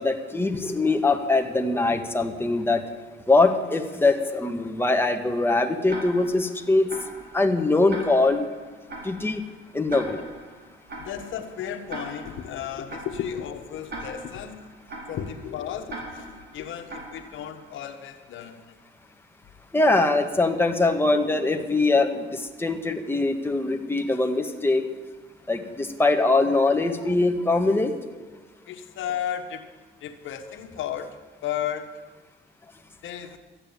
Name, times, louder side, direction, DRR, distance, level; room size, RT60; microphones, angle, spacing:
voice 1, 0.0-2.8 3.3-6.9 7.3-8.5 9.0-9.4 9.7-10.2 19.7-24.9 25.5-28.0, left 2 dB, 10° left, 4 dB, 1.5 m, -22 dB
Tick-tock, 5.9-17.7, right 2 dB, 55° right, 4.2 m, -41 dB
voice 2, 11.0-14.6 15.1-18.8 20.1-20.2 28.7-29.6 30.0-31.2 31.4-31.9 33.0-33.4, left 9 dB, 80° left, 6 dB, 1.3 m, -34 dB
13.0 x 8.8 x 8.8 m, 1.3 s
cardioid pair, 90°, 20 cm